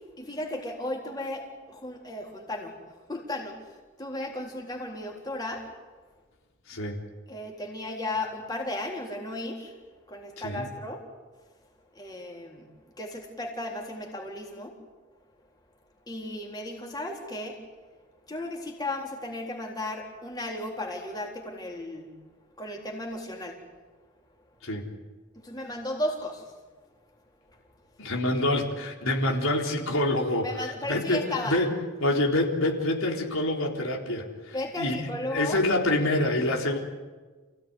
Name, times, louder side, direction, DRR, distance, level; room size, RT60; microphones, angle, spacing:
voice 1, 0.2-2.8 3.1-3.5 4.0-5.6 7.3-9.7 10.1-11.0 12.0-12.7 13.0-14.7 16.1-17.6 18.3-22.1 22.6-23.6 25.4-26.4 30.4-31.6 34.5-35.6, left 1 dB, 20° left, -1 dB, 3.9 m, -35 dB
voice 2, 6.7-7.0 10.4-10.7 24.6-24.8 28.0-36.8, left 1 dB, 80° left, 0 dB, 3.9 m, -27 dB
28.5 x 17.0 x 9.7 m, 1.3 s
head